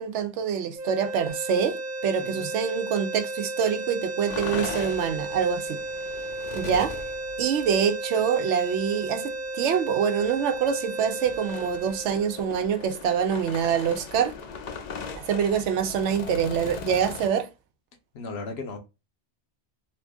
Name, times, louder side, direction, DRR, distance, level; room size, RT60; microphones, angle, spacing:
voice 1, 0.0-5.8 6.5-7.0 7.4-14.3 15.2-17.5, right 7 dB, 85° right, 0.9 m, -25 dB
sound 1, 0.7-13.0, right 2 dB, 50° right, 0.7 m, -34 dB
voice 2, 2.2-2.5 18.1-18.8, left 3 dB, 70° left, 0.9 m, -36 dB
sound 2, 4.3-7.8 8.8-8.9 9.3-9.5 9.9-17.3, left 5 dB, 55° left, 0.5 m, -39 dB
2.9 x 2.5 x 3.4 m
omnidirectional pair, 1.2 m